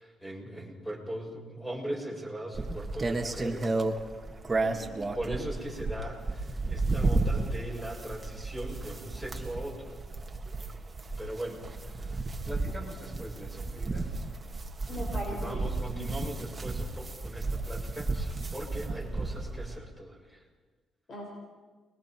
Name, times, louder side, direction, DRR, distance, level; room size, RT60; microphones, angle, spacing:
voice 1, 0.0-3.7 5.2-9.9 11.2-12.2 12.4-14.1 14.9-20.4, right 1 dB, 5° left, -1 dB, 6.9 m, -40 dB
sound 1, 2.5-19.8, right 3 dB, 25° right, 2.0 m, -33 dB
voice 2, 4.6-5.1 14.9-15.6 15.9-16.1 18.9-19.0 21.1-21.3, left 1 dB, 50° left, -1 dB, 5.5 m, -39 dB
30.0 x 21.5 x 4.6 m, 1.4 s
cardioid pair, 90°, 0 cm